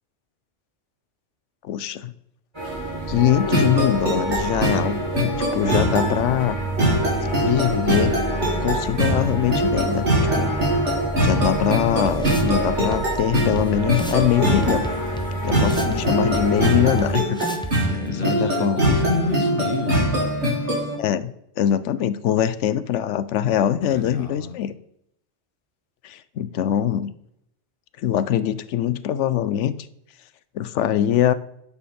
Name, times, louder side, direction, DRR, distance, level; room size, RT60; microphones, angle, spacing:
voice 1, 1.6-2.1 3.1-6.6 7.2-8.2 8.6-10.1 10.3-10.6 11.2-14.9 15.4-17.4 18.1-18.9 21.0-24.7 26.0-27.1 28.0-29.7 30.5-31.3, left 10 dB, 80° left, 15 dB, 0.9 m, -23 dB
sound 1, 2.5-17.1, right 1 dB, 25° right, 3.1 m, -29 dB
sound 2, 3.5-20.9, right 1 dB, 75° right, 3.3 m, -23 dB
sound 3, 11.4-11.5 12.1-12.6 12.9-13.0 13.6-13.7 13.9-14.3 14.6-16.0 16.3-16.4 17.0-17.1 17.4-17.7, right 1 dB, 5° left, 0.7 m, -31 dB
voice 2, 17.8-20.4 23.8-24.6, left 4 dB, 50° left, 5 dB, 1.4 m, -29 dB
9.8 x 7.1 x 4.3 m, 0.76 s
omnidirectional pair, 1.2 m